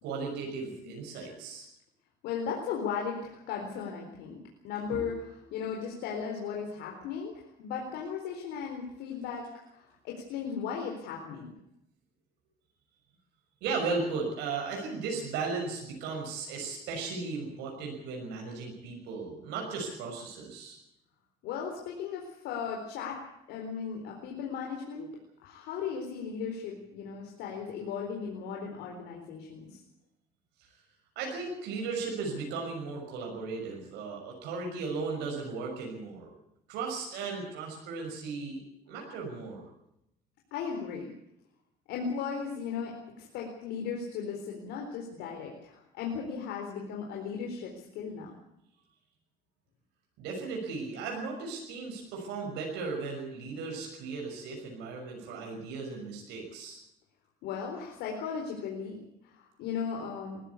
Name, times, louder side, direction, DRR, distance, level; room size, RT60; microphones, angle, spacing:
voice 1, 0.0-1.7 4.9-5.1 13.6-20.8 31.2-36.3 36.7-38.6 38.9-39.6 50.2-56.8, right 4 dB, 90° right, 1 dB, 6.2 m, -36 dB
voice 2, 2.2-4.4 4.6-11.5 21.4-23.2 23.5-29.8 40.5-41.1 41.9-48.3 57.4-60.4, left 6 dB, 90° left, 0 dB, 4.2 m, -36 dB
21.5 x 15.5 x 8.4 m, 0.82 s
cardioid pair, 110°, 17 cm